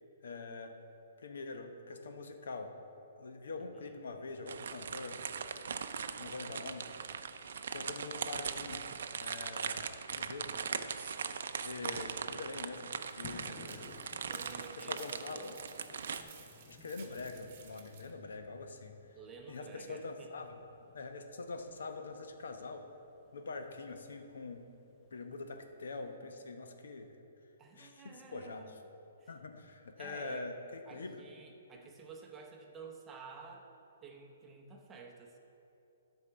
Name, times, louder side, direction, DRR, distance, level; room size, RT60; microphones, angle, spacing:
voice 1, 0.2-0.8 1.2-2.8 3.2-5.2 6.2-7.0 7.7-8.9 9.2-9.9 10.1-10.5 10.8-11.3 11.6-12.9 13.2-13.9 14.8-15.5 16.7-19.0 19.5-20.6 20.9-22.9 23.3-24.7 25.1-27.1 27.8-28.6 29.3-30.6 30.9-31.2, left 3 dB, 80° left, 5 dB, 0.9 m, -44 dB
voice 2, 3.6-4.0 13.5-14.0 14.3-15.6 19.1-20.5 27.6-28.8 29.2-29.3 30.0-30.5 30.9-33.7 34.0-35.4, right 5 dB, 15° right, 2 dB, 0.8 m, -52 dB
sound 1, 4.5-16.2, right 6 dB, 70° right, 0.5 m, -40 dB
sound 2, 13.0-18.1, right 7 dB, 40° right, 1.0 m, -56 dB
sound 3, 13.2-26.2, left 3 dB, 15° left, 0.7 m, -59 dB
9.6 x 4.6 x 6.8 m, 2.8 s
hypercardioid pair, 160°, 0 cm